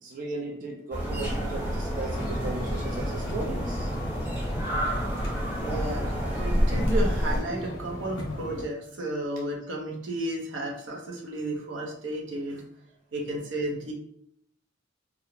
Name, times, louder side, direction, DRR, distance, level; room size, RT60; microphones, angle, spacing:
voice 1, 0.0-3.9, right 3 dB, 45° right, -1 dB, 0.3 m, -36 dB
sound 1, 0.9-7.4, equal, 10° right, 0.8 m, -28 dB
sound 2, 2.1-8.6, left 1 dB, 80° left, 0.6 m, -38 dB
voice 2, 5.5-12.6 13.1-13.9, right 1 dB, 80° right, 0 dB, 0.6 m, -33 dB
2.4 x 2.0 x 3.0 m, 0.73 s
head